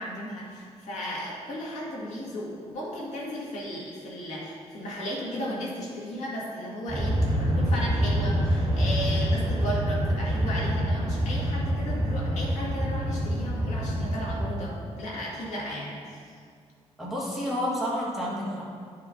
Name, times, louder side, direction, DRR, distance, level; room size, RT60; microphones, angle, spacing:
voice 1, 0.0-16.4, equal, 80° left, -5 dB, 1.9 m, -35 dB
sound 1, 6.9-14.5, equal, 55° right, 1.6 m, -26 dB
voice 2, 17.0-18.6, equal, ahead, -7 dB, 1.6 m, -30 dB
11.0 x 4.6 x 3.8 m, 2.1 s
wide cardioid pair, 150°, 12 cm